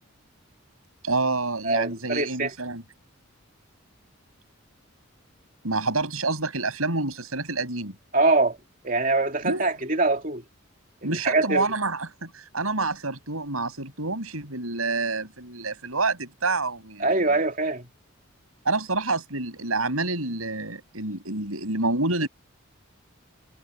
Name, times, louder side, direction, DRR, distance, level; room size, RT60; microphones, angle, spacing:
voice 1, 1.0-2.8 5.6-7.9 9.4-9.7 11.0-17.1 18.7-22.3, right 3 dB, 90° right, 7.1 m, -28 dB
voice 2, 1.6-2.5 8.1-8.6 8.8-10.4 11.0-11.7 17.0-17.9, right 3 dB, 40° right, 2.9 m, -23 dB
head